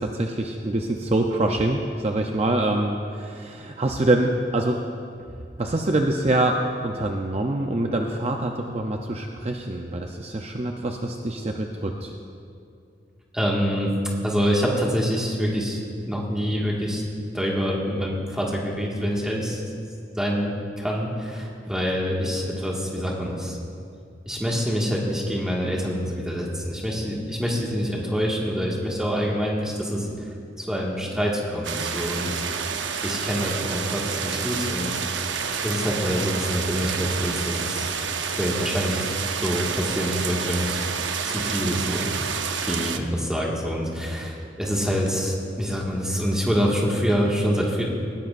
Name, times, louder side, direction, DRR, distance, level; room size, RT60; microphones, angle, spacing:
voice 1, 0.0-4.8 5.6-12.1, right 1 dB, 35° right, 2 dB, 0.6 m, -25 dB
voice 2, 13.3-13.9 14.2-15.8 16.1-17.0 17.3-19.6 20.2-23.6 24.3-30.3 30.6-32.4 33.0-37.9 38.4-40.8 41.3-42.1 42.6-47.8, equal, 5° right, -3 dB, 1.8 m, -26 dB
sound 1, 31.6-43.0, right 6 dB, 85° right, 0.7 m, -29 dB
19.5 x 16.0 x 2.5 m, 2.5 s
head